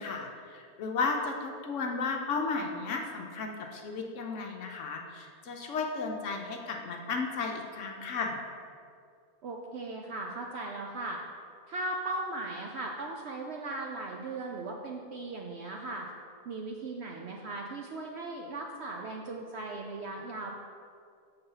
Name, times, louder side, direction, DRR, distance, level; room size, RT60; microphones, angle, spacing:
voice 1, 0.0-8.4, left 4 dB, 65° left, 2 dB, 0.9 m, -34 dB
voice 2, 9.4-11.2 11.7-16.1 16.5-20.5, right 2 dB, 65° right, 1 dB, 0.6 m, -38 dB
6.8 x 3.9 x 5.4 m, 2.3 s
omnidirectional pair, 1.5 m